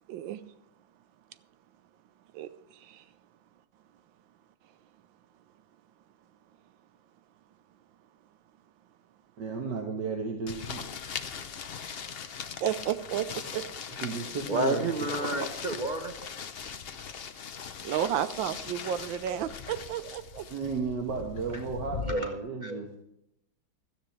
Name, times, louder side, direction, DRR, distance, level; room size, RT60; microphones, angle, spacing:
voice 1, 0.1-0.4 2.3-3.0 12.6-13.7 17.8-20.5, right 10 dB, 80° right, 13 dB, 1.4 m, -32 dB
voice 2, 9.4-10.9 13.9-15.2 20.5-23.0, right 5 dB, 65° right, 1 dB, 1.9 m, -34 dB
sound 1, 10.5-22.1, left 7 dB, 75° left, 0.5 m, -40 dB
voice 3, 14.5-16.3 19.3-19.4 22.1-22.8, right 1 dB, 45° right, 5 dB, 0.6 m, -31 dB
17.0 x 13.0 x 3.2 m, 0.80 s
omnidirectional pair, 2.1 m